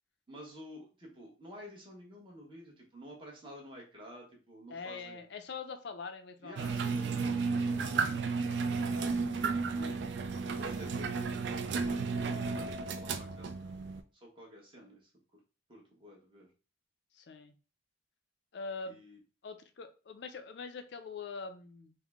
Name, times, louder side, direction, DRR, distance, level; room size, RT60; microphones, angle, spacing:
voice 1, 0.3-5.3 6.4-9.0 10.4-13.8 14.2-15.1 15.7-16.5 18.9-19.2, equal, 25° right, -2 dB, 1.0 m, -51 dB
voice 2, 4.7-7.1 9.7-10.0 17.1-17.5 18.5-19.0 19.4-21.9, left 4 dB, 55° left, 8 dB, 0.4 m, -43 dB
sound 1, 6.6-14.0, right 4 dB, 60° right, 0.3 m, -33 dB
3.6 x 2.1 x 3.5 m, 0.35 s
head